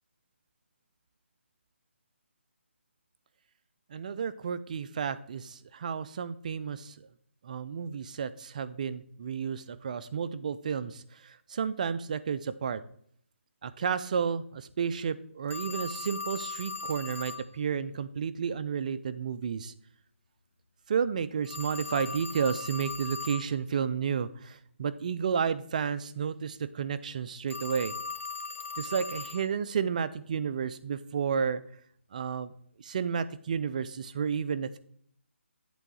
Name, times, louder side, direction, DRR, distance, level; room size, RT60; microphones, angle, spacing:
voice 1, 3.9-7.0 7.4-12.8 13.6-19.7 20.9-27.9 28.8-31.6 32.1-32.5 32.8-34.8, right 7 dB, 35° right, 14 dB, 0.4 m, -32 dB
Telephone, 15.5-17.5 21.4-23.5 27.5-29.5, left 4 dB, 75° left, 0.7 m, -38 dB
8.3 x 3.5 x 6.2 m, 0.64 s
figure-of-eight pair, 160°, 7 cm